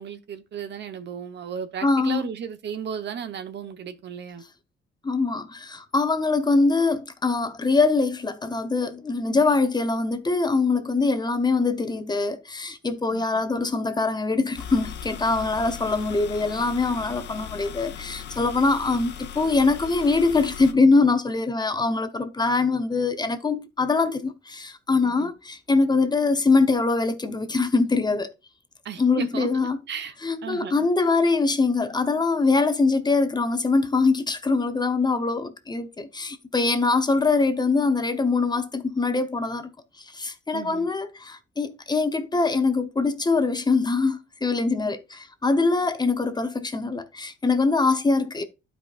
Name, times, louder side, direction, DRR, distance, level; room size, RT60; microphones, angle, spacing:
voice 1, 0.0-4.5 13.1-13.4 25.0-25.3 28.8-29.5 29.9-30.1 30.4-30.9 40.5-40.9, right 7 dB, 60° right, 1.0 m, -34 dB
voice 2, 1.8-2.3 5.0-28.3 29.0-29.8 30.2-39.7 40.0-48.4, left 3 dB, 20° left, 0.8 m, -23 dB
sound 1, 14.5-20.7, left 9 dB, 60° left, 0.8 m, -38 dB
11.5 x 5.0 x 2.4 m
cardioid pair, 90°, 20 cm